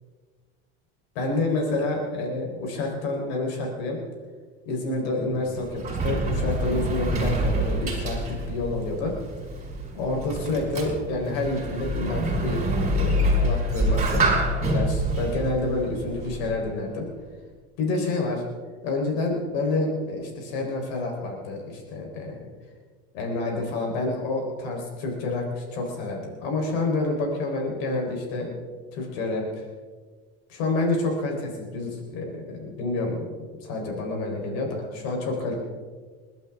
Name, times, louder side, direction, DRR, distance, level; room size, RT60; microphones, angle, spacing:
voice 1, 1.2-4.0 4.7-9.1 9.9-12.6 12.9-17.1 17.8-18.4 18.8-22.5 23.1-28.6 28.9-29.6 30.5-33.4 33.6-35.5, left 2 dB, 85° left, 1 dB, 4.0 m, -28 dB
Sliding door, 5.3-16.7, right 1 dB, 25° right, 5.4 m, -26 dB
29.0 x 12.0 x 3.6 m, 1.5 s
supercardioid pair, 125°, 29 cm